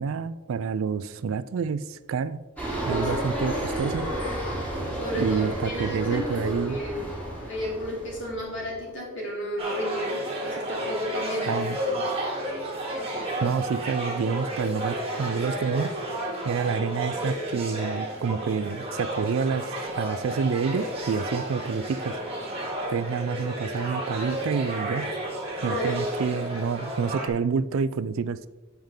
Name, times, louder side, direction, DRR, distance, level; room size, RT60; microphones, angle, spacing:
voice 1, 0.0-2.4 2.9-4.1 5.1-6.8 11.5-11.8 13.4-15.9 16.4-22.2 22.9-25.1 25.6-28.5, right 5 dB, 65° right, 15 dB, 0.3 m, -28 dB
sound 1, 2.6-8.9, right 1 dB, 5° left, 2.9 m, -32 dB
voice 2, 2.8-3.1 5.0-7.1 7.4-12.0 25.6-26.0, equal, 55° left, -3 dB, 3.1 m, -32 dB
sound 2, 9.6-27.3, right 1 dB, 25° right, 1.9 m, -32 dB
8.9 x 7.2 x 3.7 m, 1.2 s
head